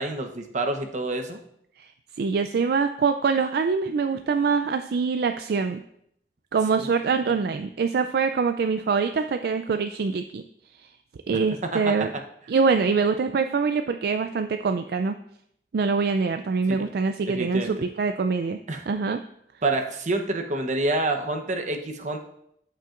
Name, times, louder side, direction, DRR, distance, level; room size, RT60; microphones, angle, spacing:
voice 1, 0.0-1.4 6.8-6.9 11.6-12.2 16.7-16.9 17.3-17.9 18.7-18.9 19.6-22.2, right 2 dB, 45° right, 4 dB, 0.9 m, -28 dB
voice 2, 2.2-5.8 6.5-10.4 11.3-12.1 12.5-15.2 15.7-18.6 18.9-19.2, right 5 dB, 60° right, 7 dB, 0.3 m, -24 dB
14.5 x 5.6 x 2.5 m, 0.73 s
head